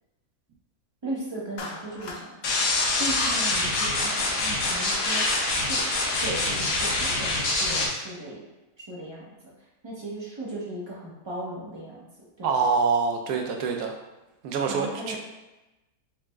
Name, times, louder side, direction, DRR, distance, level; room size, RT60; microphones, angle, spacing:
voice 1, 1.0-2.4 3.0-5.8 6.2-8.4 8.9-9.3 9.8-12.0 12.4-12.6 14.7-15.2, right 1 dB, 30° right, -6 dB, 0.5 m, -37 dB
Clapping, 1.6-2.3, left 3 dB, 85° left, 0.5 m, -38 dB
sound 1, 2.4-7.9, left 2 dB, 65° left, 1.0 m, -25 dB
voice 2, 12.4-13.9 14.4-15.2, right 5 dB, 85° right, 3 dB, 1.2 m, -25 dB
4.7 x 2.0 x 3.3 m, 1.0 s
omnidirectional pair, 1.6 m